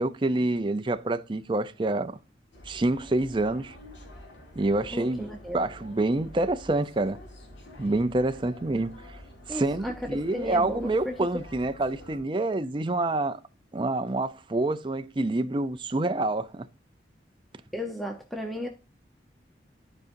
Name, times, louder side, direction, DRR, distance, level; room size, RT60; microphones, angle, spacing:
voice 1, 0.0-2.2 2.7-3.8 4.6-5.2 5.5-7.2 7.8-8.9 9.5-13.4 13.7-16.7, right 2 dB, 25° right, 0.5 m, -27 dB
sound 1, 2.5-12.2, left 1 dB, 85° left, 2.5 m, -47 dB
voice 2, 4.9-5.6 9.5-11.2 17.7-18.7, left 1 dB, ahead, 0.8 m, -35 dB
12.0 x 5.1 x 2.6 m
head